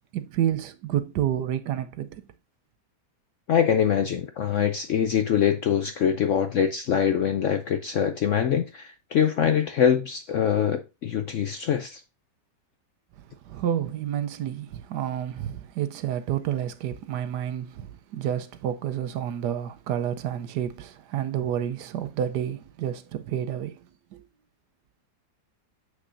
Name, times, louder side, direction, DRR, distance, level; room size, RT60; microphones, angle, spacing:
voice 1, 0.1-2.2 13.5-23.8 24.1-24.2, right 10 dB, 75° right, 1.2 m, -29 dB
voice 2, 3.5-12.0, left 8 dB, 70° left, 0.7 m, -24 dB
7.5 x 6.3 x 2.6 m
omnidirectional pair, 1.9 m